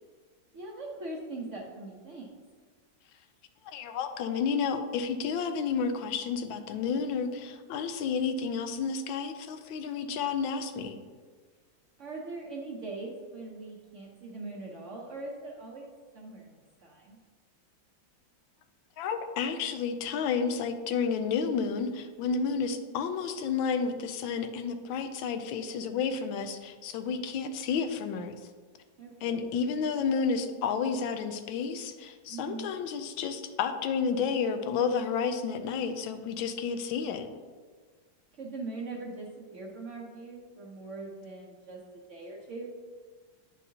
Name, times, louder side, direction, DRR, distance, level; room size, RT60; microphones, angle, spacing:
voice 1, 0.5-2.3 12.0-17.2 29.0-29.5 32.3-32.7 38.4-41.8 42.1-42.7, right 3 dB, 55° right, -2 dB, 0.8 m, -41 dB
voice 2, 3.6-10.9 19.0-28.4 29.2-37.3, left 6 dB, 85° left, 7 dB, 1.4 m, -31 dB
9.2 x 5.4 x 2.8 m, 1.5 s
omnidirectional pair, 2.1 m